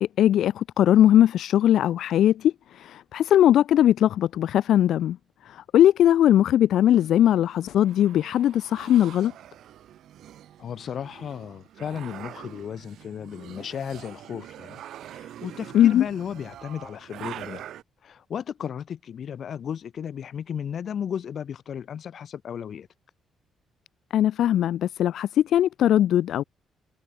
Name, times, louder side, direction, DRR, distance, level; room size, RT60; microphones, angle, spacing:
voice 1, 0.0-5.2 5.5-9.3 15.7-16.1 24.1-26.4, left 11 dB, 70° left, 0.4 m, -20 dB
sound 1, 6.9-17.8, right 11 dB, 70° right, 3.4 m, -44 dB
voice 2, 10.6-17.6 18.0-22.9, left 8 dB, 45° left, 5.0 m, -34 dB
cardioid pair, 165°, 0 cm